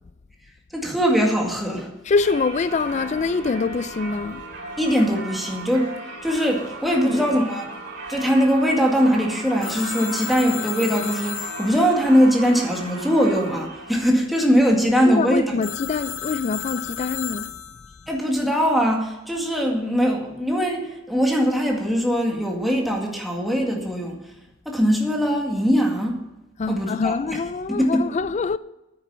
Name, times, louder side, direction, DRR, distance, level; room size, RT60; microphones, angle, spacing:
voice 1, 0.7-1.9 4.8-5.9 6.2-7.7 8.1-15.6 18.1-24.2 24.7-26.2 26.7-27.4 27.7-28.1, equal, ahead, 2.0 m, -21 dB
voice 2, 2.0-4.4 7.0-7.5 15.0-17.5 26.6-28.6, left 4 dB, 35° left, 0.3 m, -25 dB
Singing / Church bell, 2.2-14.1, right 2 dB, 60° right, 2.7 m, -36 dB
Telephone, 9.6-13.3 15.6-18.2, left 10 dB, 70° left, 0.7 m, -34 dB
9.7 x 9.2 x 6.9 m
head